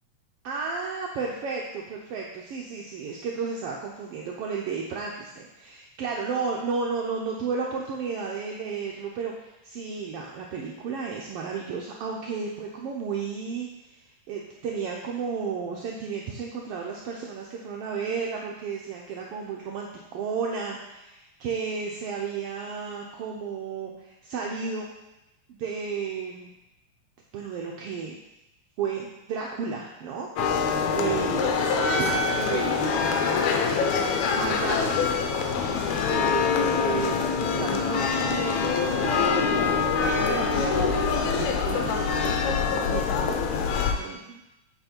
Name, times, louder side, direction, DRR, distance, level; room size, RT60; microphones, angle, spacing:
voice 1, 0.4-24.9 25.5-26.5 27.3-28.2 28.8-31.5 31.9-33.1 34.3-34.9 36.1-39.7 40.0-42.1 42.4-43.4 44.0-44.4, right 5 dB, 80° right, -1 dB, 1.3 m, -33 dB
sound 1, 30.4-43.9, left 5 dB, 80° left, 2.0 m, -24 dB
7.9 x 4.4 x 4.4 m, 0.93 s
omnidirectional pair, 3.4 m